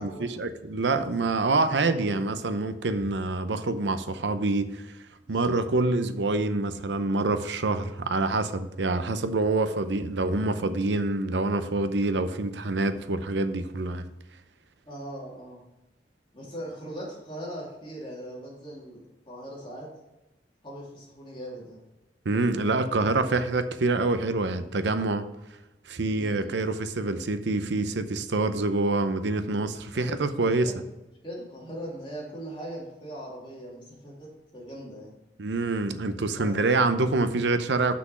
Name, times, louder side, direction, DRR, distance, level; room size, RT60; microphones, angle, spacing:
voice 1, 0.0-4.8 5.3-14.0 22.2-25.3 25.9-30.7 35.4-38.0, right 2 dB, 80° right, 10 dB, 0.7 m, -26 dB
voice 2, 14.8-15.6 16.3-19.9 20.6-21.8 26.1-26.5 30.1-30.8 31.2-35.1 36.3-36.5, right 1 dB, 30° left, -5 dB, 3.1 m, -40 dB
6.0 x 6.0 x 6.0 m, 0.97 s
head